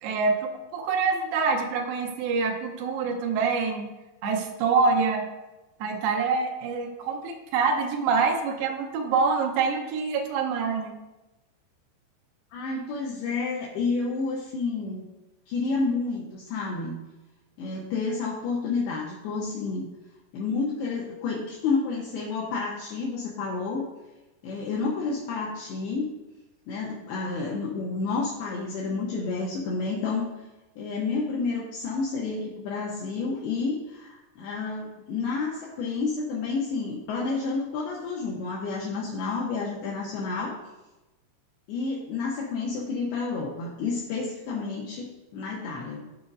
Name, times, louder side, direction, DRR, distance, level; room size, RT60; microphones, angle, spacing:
voice 1, 0.0-3.9 4.2-5.3 5.8-10.9, right 5 dB, 80° right, 2 dB, 2.0 m, -26 dB
voice 2, 12.5-15.1 15.5-17.0 17.6-19.9 20.3-23.9 24.4-26.1 26.7-30.3 30.8-40.6 41.7-46.0, left 4 dB, 75° left, -4 dB, 2.5 m, -30 dB
14.0 x 5.0 x 2.5 m, 1.0 s
omnidirectional pair, 5.2 m